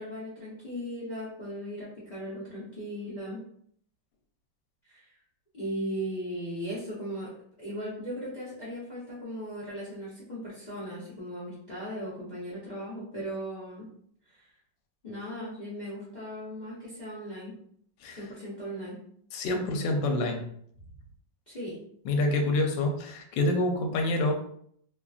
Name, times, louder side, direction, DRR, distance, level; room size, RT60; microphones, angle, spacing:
voice 1, 0.0-3.5 4.8-5.1 5.5-7.3 7.6-13.9 14.2-14.5 15.0-17.6 18.1-19.0 21.5-21.8, equal, 45° left, -9 dB, 0.5 m, -37 dB
voice 2, 19.3-20.4 22.0-24.3, left 2 dB, 80° left, 3 dB, 1.3 m, -27 dB
3.1 x 2.4 x 2.4 m, 0.65 s
omnidirectional pair, 2.1 m